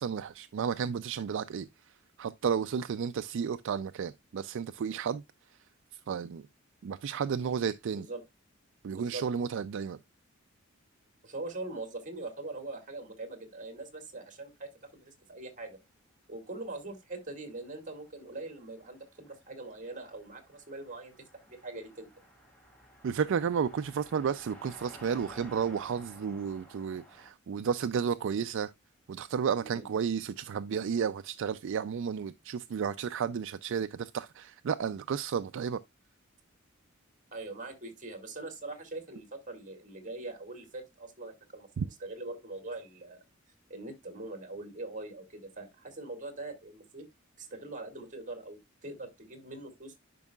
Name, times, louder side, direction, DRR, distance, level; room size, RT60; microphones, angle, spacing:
voice 1, 0.0-1.7 2.2-5.2 6.1-6.4 6.8-8.1 8.8-10.0 23.0-28.7 29.1-35.8 41.8-41.9, right 7 dB, 60° right, 0.4 m, -32 dB
voice 2, 7.9-8.2 8.9-9.3 11.2-15.8 16.3-21.1 21.4-22.1 29.6-29.9 37.3-43.2 43.7-47.1 47.4-50.0, right 2 dB, 40° right, 2.1 m, -42 dB
Car passing by, 17.2-27.3, equal, 5° left, 2.6 m, -55 dB
11.0 x 5.4 x 2.3 m
head